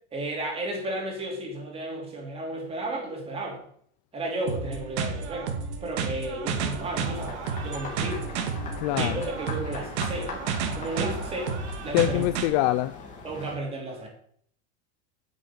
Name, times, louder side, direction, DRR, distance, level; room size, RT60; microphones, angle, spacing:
voice 1, 0.1-3.6 4.1-5.5 5.8-8.3 8.9-10.3 10.6-12.2 13.2-14.1, right 2 dB, 15° right, 1 dB, 3.1 m, -33 dB
sound 1, 4.5-12.5, right 6 dB, 80° right, 2.4 m, -31 dB
sound 2, 6.8-13.6, left 3 dB, 20° left, 2.8 m, -41 dB
voice 2, 8.8-9.2 11.9-12.9, left 15 dB, 40° left, 13 dB, 0.4 m, -24 dB
10.5 x 6.3 x 8.5 m, 0.63 s
supercardioid pair, 170°, 34 cm